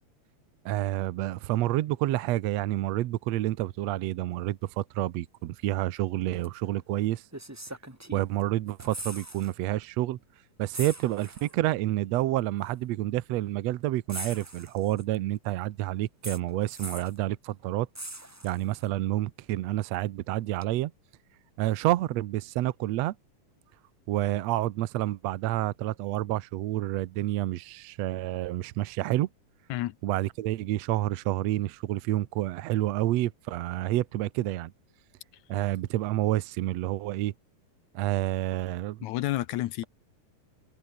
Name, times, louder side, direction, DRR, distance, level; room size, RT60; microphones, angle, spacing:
voice 1, 0.7-7.2 8.1-10.2 10.6-17.9 18.4-20.9 21.6-23.2 24.1-29.3 30.0-34.7 35.5-37.3 37.9-39.0, right 15 dB, 70° right, 1.8 m, -29 dB
sound 1, 6.4-6.6 7.3-8.4 8.7-9.5 9.8-10.0 10.7-11.6 12.6-12.7 14.1-15.2 16.2-17.2 17.9-18.9 20.6-20.7, right 1 dB, 15° right, 0.6 m, -41 dB
voice 2, 39.0-39.8, left 15 dB, 75° left, 2.0 m, -30 dB
omnidirectional pair, 3.7 m